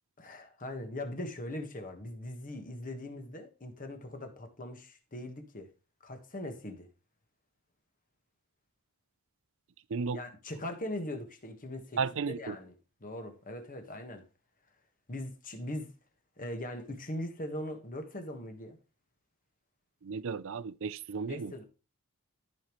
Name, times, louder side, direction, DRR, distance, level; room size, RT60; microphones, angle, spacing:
voice 1, 0.2-5.7 6.0-6.9 10.1-12.0 12.3-12.7 13.0-14.2 15.1-15.9 16.4-18.8 21.3-21.6, left 1 dB, 40° left, 1.5 m, -40 dB
voice 2, 9.9-10.2 12.0-12.6 20.0-21.5, right 5 dB, 60° right, 0.5 m, -34 dB
14.0 x 5.4 x 3.1 m
head